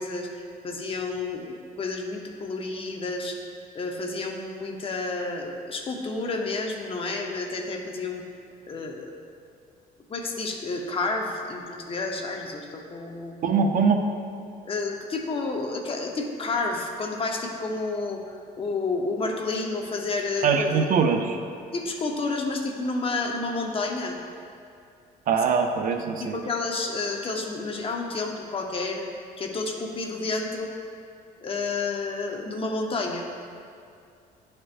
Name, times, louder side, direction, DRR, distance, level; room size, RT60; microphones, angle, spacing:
voice 1, 0.0-3.4 3.7-8.2 8.7-9.1 10.1-13.4 14.6-20.9 21.7-24.2 26.2-29.0 29.4-30.7 31.4-33.3, left 3 dB, 35° left, 2 dB, 0.8 m, -30 dB
voice 2, 13.4-14.1 20.4-21.4 25.3-26.4, right 5 dB, 55° right, 5 dB, 0.6 m, -22 dB
11.0 x 4.4 x 2.5 m, 2.4 s
cardioid pair, 110°, 17 cm